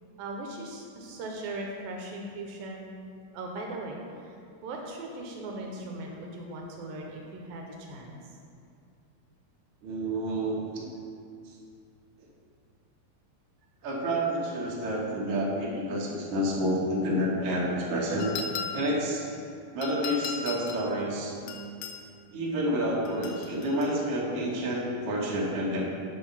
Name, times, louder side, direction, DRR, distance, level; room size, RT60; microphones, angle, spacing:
voice 1, 0.2-2.9 3.3-8.4, right 2 dB, 80° right, 0 dB, 2.3 m, -39 dB
voice 2, 9.8-10.8 11.4-11.6 13.8-18.3 18.7-19.3 19.7-21.4 22.3-25.9, equal, 65° right, -4 dB, 1.5 m, -29 dB
sound 1, 18.2-19.0 19.8-20.9 21.5-22.0 23.1-24.0, left 6 dB, 80° left, 2.4 m, -37 dB
7.0 x 5.6 x 5.4 m, 2.4 s
omnidirectional pair, 4.4 m